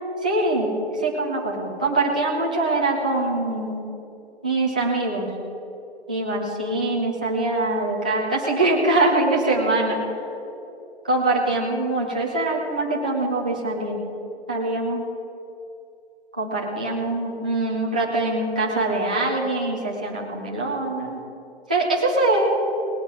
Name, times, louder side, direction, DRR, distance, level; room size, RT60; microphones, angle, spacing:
voice 1, 0.2-3.8 4.4-5.3 6.1-10.1 11.0-14.0 14.5-15.0 16.4-21.2 21.7-22.5, right 2 dB, 10° right, -4 dB, 0.3 m, -23 dB
18.5 x 8.1 x 5.9 m, 2.8 s
figure-of-eight pair, 145°, 34 cm